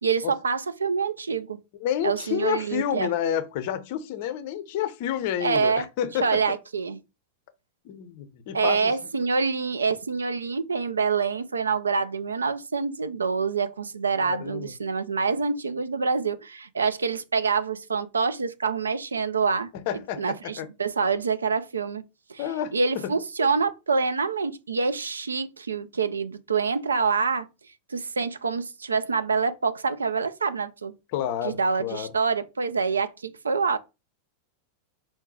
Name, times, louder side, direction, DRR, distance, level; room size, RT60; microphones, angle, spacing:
voice 1, 0.0-1.6 2.0-3.1 5.4-5.9 6.2-7.0 8.5-19.7 20.2-22.0 22.3-22.4 22.7-27.5 27.9-30.9 31.4-33.8, right 5 dB, 75° right, 0.4 m, -26 dB
voice 2, 1.8-6.4 7.8-8.9 14.2-14.7 19.7-20.7 22.4-22.7 23.0-23.1 31.1-32.1, left 10 dB, 50° left, 0.6 m, -29 dB
4.6 x 2.2 x 4.0 m
figure-of-eight pair, 90°, 0 cm